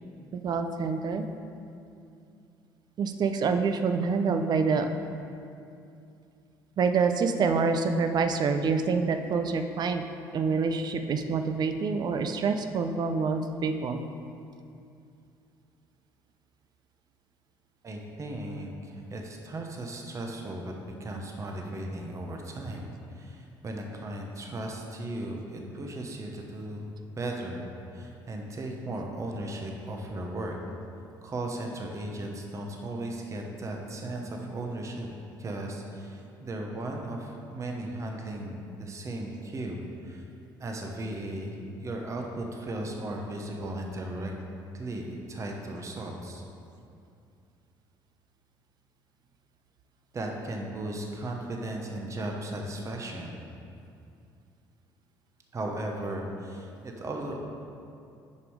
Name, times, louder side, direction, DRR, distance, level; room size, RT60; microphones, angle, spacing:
voice 1, 0.3-1.2 3.0-4.9 6.8-10.0 10.3-14.0, right 5 dB, 50° right, 7 dB, 0.5 m, -26 dB
voice 2, 17.8-20.7 21.0-27.7 27.9-30.6 31.2-35.1 35.4-40.3 40.6-44.3 44.7-46.4 50.1-53.4 55.5-57.4, right 1 dB, 35° right, 1 dB, 1.0 m, -36 dB
6.7 x 5.3 x 4.7 m, 2.5 s
supercardioid pair, 75°, 9 cm